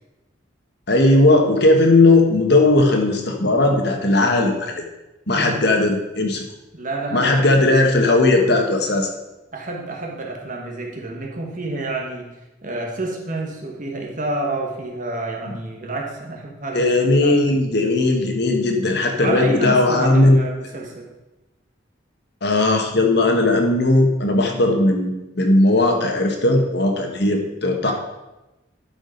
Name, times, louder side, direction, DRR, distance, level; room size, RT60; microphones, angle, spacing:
voice 1, 0.9-4.8 5.3-6.4 7.1-9.1 16.7-20.4 22.4-27.9, left 2 dB, 55° left, 3 dB, 1.3 m, -17 dB
voice 2, 5.3-5.7 6.7-7.3 9.5-12.3 12.6-16.9 17.2-17.4 19.2-21.1 27.8-27.9, right 2 dB, 45° right, 0 dB, 1.7 m, -28 dB
12.0 x 5.1 x 5.1 m, 1.0 s
head